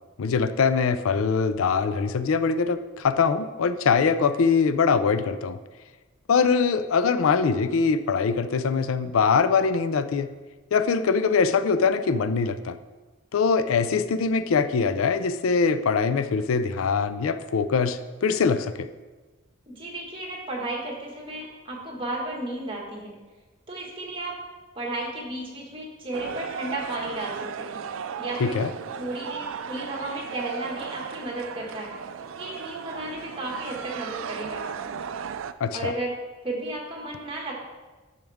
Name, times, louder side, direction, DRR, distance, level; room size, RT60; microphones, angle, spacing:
voice 1, 0.2-5.6 6.3-10.3 10.7-12.8 13.3-18.9 28.4-28.7 35.6-35.9, left 5 dB, 85° left, 12 dB, 0.4 m, -23 dB
voice 2, 19.7-23.1 23.7-24.4 24.8-27.8 28.2-28.6 29.0-31.9 32.4-35.0 35.7-36.1 36.4-37.5, right 1 dB, 25° right, -3 dB, 1.8 m, -34 dB
sound 1, 26.1-35.5, right 7 dB, 75° right, 0.4 m, -36 dB
10.5 x 6.4 x 3.5 m, 1.3 s
head